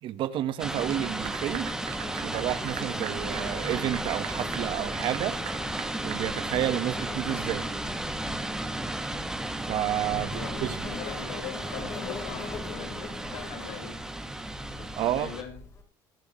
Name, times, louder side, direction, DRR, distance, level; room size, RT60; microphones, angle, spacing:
voice 1, 0.0-1.7 2.2-5.3 6.0-7.7 9.7-10.8 15.0-15.3, right 12 dB, 55° right, 1.3 m, -30 dB
Insect, 0.6-15.8, left 4 dB, 30° left, 4.0 m, -44 dB
sound 1, 0.6-15.4, right 1 dB, 5° right, 2.2 m, -34 dB
Clapping / Applause, 0.6-6.9, right 17 dB, 80° right, 1.1 m, -42 dB
voice 2, 10.2-14.0 14.8-15.6, left 9 dB, 80° left, 4.6 m, -41 dB
22.5 x 8.0 x 3.1 m
cardioid pair, 130°, 10 cm